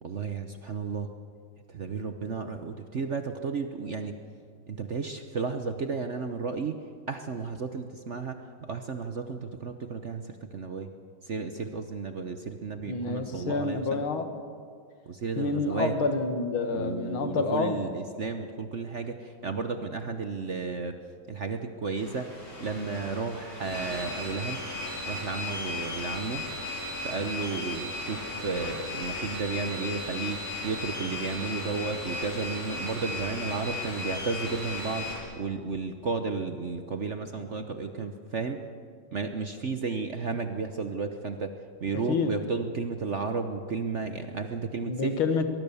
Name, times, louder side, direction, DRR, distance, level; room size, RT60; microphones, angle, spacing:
voice 1, 0.0-1.1 1.7-4.2 4.7-6.8 7.1-10.9 11.2-14.0 15.1-16.0 16.7-21.0 21.3-22.3 22.6-24.6 25.1-26.4 27.0-38.6 39.1-41.5 41.8-45.2, right 4 dB, 50° right, 7 dB, 0.9 m, -33 dB
voice 2, 12.9-14.3 15.4-17.8 42.1-42.3 44.9-45.5, left 4 dB, 85° left, 8 dB, 2.4 m, -28 dB
sound 1, 22.0-35.2, left 2 dB, 50° left, 6.8 m, -36 dB
23.0 x 20.5 x 7.1 m, 2.1 s
omnidirectional pair, 2.2 m